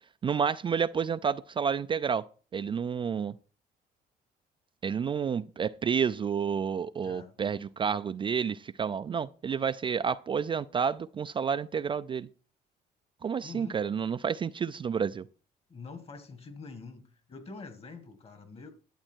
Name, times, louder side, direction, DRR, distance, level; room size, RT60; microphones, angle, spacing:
voice 1, 0.2-2.2 2.5-3.4 4.8-12.3 13.2-15.3, right 7 dB, 30° right, 0.4 m, -30 dB
voice 2, 7.0-7.4 13.4-13.8 15.7-18.7, left 4 dB, 35° left, 1.9 m, -45 dB
11.5 x 7.5 x 4.5 m
cardioid pair, 110°, 17 cm